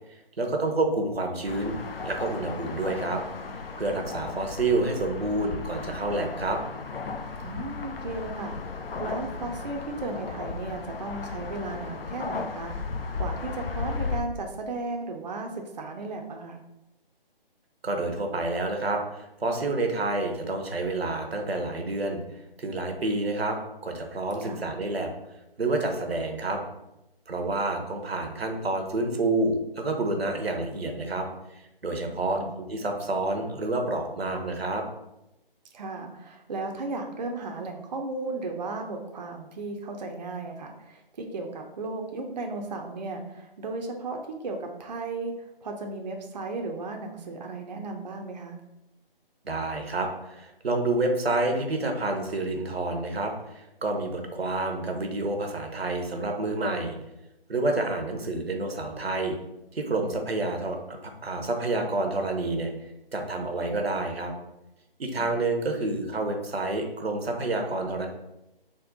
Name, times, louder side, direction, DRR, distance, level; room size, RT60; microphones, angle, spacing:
voice 1, 0.4-1.8 2.0-3.2 3.8-6.6 17.8-22.2 22.6-23.6 23.8-25.1 25.6-26.6 27.3-31.3 31.8-34.8 49.4-57.0 57.5-59.4 59.7-62.7 63.1-64.3 65.0-68.1, right 2 dB, 85° right, 4 dB, 0.7 m, -28 dB
sound 1, 1.5-14.2, left 4 dB, 75° left, 0.5 m, -35 dB
voice 2, 7.4-16.6 24.4-24.6 32.1-32.5 35.7-48.6 65.2-65.3, right 3 dB, 45° right, 3 dB, 0.4 m, -35 dB
3.6 x 2.1 x 3.7 m, 0.91 s
figure-of-eight pair, 145°, 30 cm